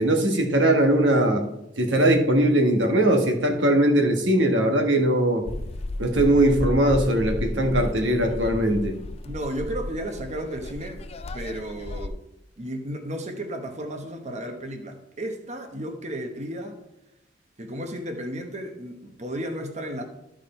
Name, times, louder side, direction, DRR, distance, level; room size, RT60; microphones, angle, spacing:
voice 1, 0.0-1.4 1.8-5.4 6.0-8.9, right 1 dB, 85° right, 1.7 m, -20 dB
sound 1, 5.5-12.1, left 2 dB, 35° left, 0.5 m, -33 dB
voice 2, 9.2-11.0 11.3-12.2 12.6-16.8 17.6-20.0, right 1 dB, 40° right, 1.1 m, -33 dB
13.0 x 4.9 x 4.4 m
head